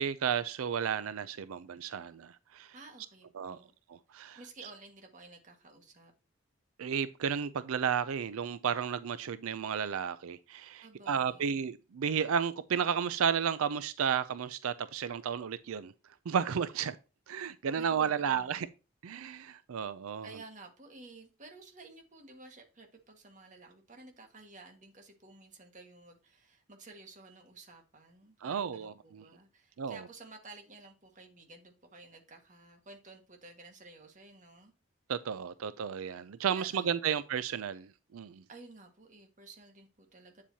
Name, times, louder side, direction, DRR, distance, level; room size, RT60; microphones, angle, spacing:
voice 1, 0.0-2.7 3.4-3.6 3.9-4.4 6.8-15.9 16.3-17.0 17.3-18.7 19.0-20.3 28.4-28.9 29.8-30.0 35.1-38.4, right 7 dB, 85° right, 0.4 m, -33 dB
voice 2, 2.7-3.7 4.3-6.1 10.8-11.7 17.7-18.7 20.2-34.7 36.5-37.2 38.5-40.4, right 3 dB, 35° right, 1.7 m, -53 dB
8.5 x 7.3 x 2.8 m
head